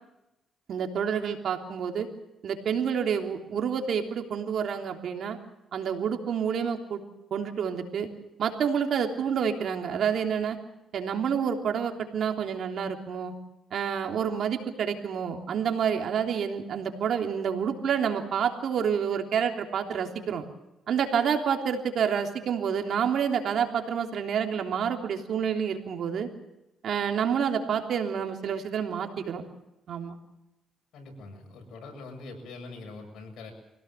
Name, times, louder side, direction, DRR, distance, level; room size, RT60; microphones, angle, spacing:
voice 1, 0.7-2.1 2.4-5.4 5.7-7.0 7.3-8.1 8.4-10.6 10.9-13.3 13.7-20.4 20.9-26.3 26.8-29.4 29.9-30.2, right 7 dB, 65° right, 4 dB, 3.3 m, -28 dB
voice 2, 30.9-33.5, left 3 dB, 75° left, 3 dB, 7.3 m, -43 dB
25.0 x 17.0 x 7.4 m, 0.93 s
cardioid pair, 90°, 0 cm